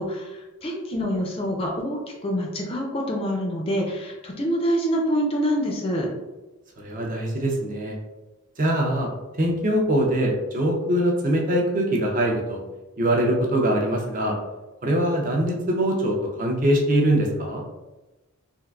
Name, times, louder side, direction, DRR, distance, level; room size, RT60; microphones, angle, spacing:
voice 1, 0.0-6.1, equal, 25° left, 0 dB, 0.4 m, -26 dB
voice 2, 6.8-8.0 8.6-9.1 9.4-12.6 13.0-14.4 14.8-17.6, right 1 dB, 35° right, 0 dB, 0.5 m, -23 dB
3.6 x 2.4 x 2.3 m, 1.1 s
head